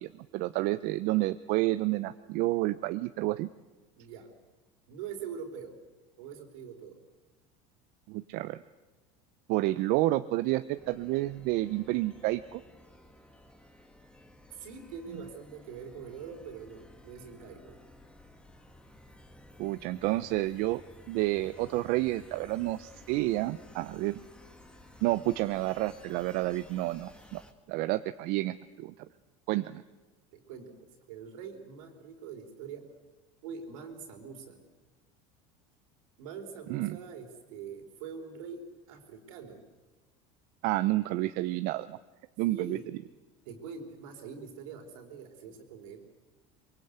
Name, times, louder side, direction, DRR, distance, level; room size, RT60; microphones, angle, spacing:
voice 1, 0.0-3.5 8.1-8.6 9.5-12.6 19.6-20.8 21.1-24.2 25.0-27.4 27.7-28.9 29.5-29.8 36.7-37.0 40.6-42.0 42.4-42.8, right 18 dB, 60° right, 12 dB, 0.7 m, -30 dB
voice 2, 4.0-4.3 4.9-5.8 6.2-6.9 14.5-17.8 30.3-32.9 33.4-34.6 36.2-39.6 42.4-42.9 43.4-46.0, right 6 dB, 80° right, 4 dB, 4.3 m, -44 dB
sound 1, 10.8-27.5, left 1 dB, 5° left, 2.0 m, -55 dB
23.5 x 23.0 x 8.1 m, 1.2 s
supercardioid pair, 105°, 17 cm